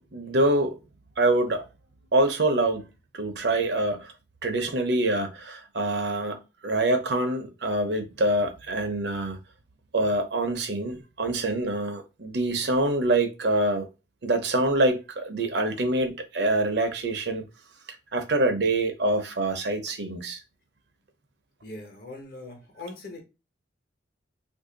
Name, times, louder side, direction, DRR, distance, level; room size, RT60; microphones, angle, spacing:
voice 1, 0.1-0.8 1.2-1.7 2.1-2.9 3.1-4.1 4.4-9.4 9.9-13.9 14.2-17.4 18.1-20.4, right 2 dB, 65° right, 0.8 m, -25 dB
voice 2, 21.6-23.2, left 2 dB, 50° left, 1.1 m, -41 dB
2.7 x 2.7 x 3.9 m
head